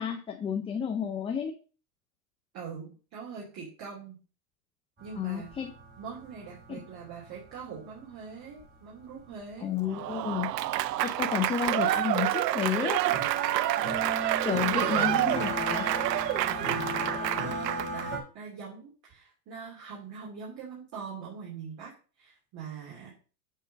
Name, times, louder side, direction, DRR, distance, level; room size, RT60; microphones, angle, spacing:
voice 1, 0.0-1.5 5.2-5.7 6.7-6.8 9.6-10.5 10.8-13.0 14.4-15.9, left 8 dB, 10° left, 4 dB, 0.6 m, -31 dB
voice 2, 2.5-4.2 5.0-5.5 6.0-9.7 14.5-15.3 16.4-21.9 22.2-23.1, right 6 dB, 35° right, -5 dB, 3.1 m, -42 dB
sound 1, 5.0-10.9 11.3-11.4 11.7-12.0 12.3-18.2, right 2 dB, 20° right, 2.9 m, -36 dB
Applause / Crowd, 9.9-18.1, right 14 dB, 85° right, 0.6 m, -28 dB
8.8 x 3.7 x 5.2 m, 0.36 s
hypercardioid pair, 115°, 48 cm